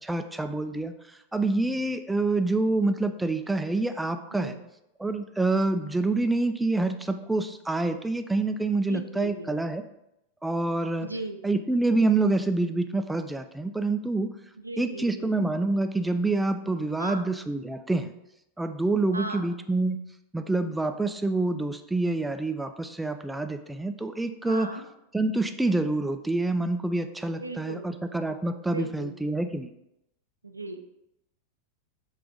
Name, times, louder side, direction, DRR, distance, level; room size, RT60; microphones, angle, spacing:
voice 1, 0.0-0.9 1.3-4.5 5.0-9.8 10.4-11.1 11.4-14.3 14.8-18.1 18.6-20.0 20.3-24.7 25.1-29.7, right 2 dB, 5° right, 7 dB, 0.3 m, -27 dB
voice 2, 4.3-4.6 8.8-9.6 11.0-11.4 14.6-15.3 17.0-17.3 19.1-19.4 24.5-24.8 27.4-28.0 28.7-29.2 30.4-30.8, right 2 dB, 85° right, 6 dB, 0.4 m, -37 dB
5.9 x 2.5 x 3.5 m, 0.85 s
figure-of-eight pair, 90°, 0 cm